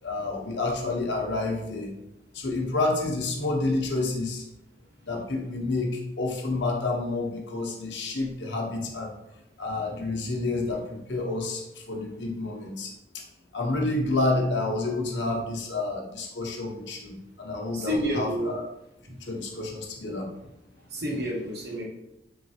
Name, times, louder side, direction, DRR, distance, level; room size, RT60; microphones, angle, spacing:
voice 1, 0.0-1.9 2.3-4.4 5.0-9.1 9.6-13.2 13.5-18.6 19.2-20.3, left 2 dB, 85° left, 0 dB, 0.8 m, -29 dB
voice 2, 17.7-18.5 20.9-21.8, equal, 65° right, -2 dB, 1.0 m, -29 dB
3.8 x 3.0 x 2.8 m, 0.87 s
head